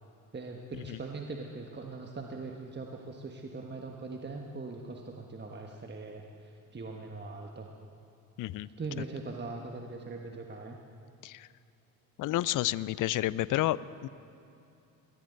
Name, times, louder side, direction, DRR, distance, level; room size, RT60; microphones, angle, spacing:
voice 1, 0.3-7.7 8.6-10.8, right 3 dB, 20° right, 2 dB, 1.4 m, -41 dB
voice 2, 8.4-8.7 11.2-11.5 12.2-14.1, left 15 dB, 45° left, 19 dB, 0.5 m, -30 dB
22.0 x 14.0 x 4.0 m, 2.8 s
hypercardioid pair, 50°, 46 cm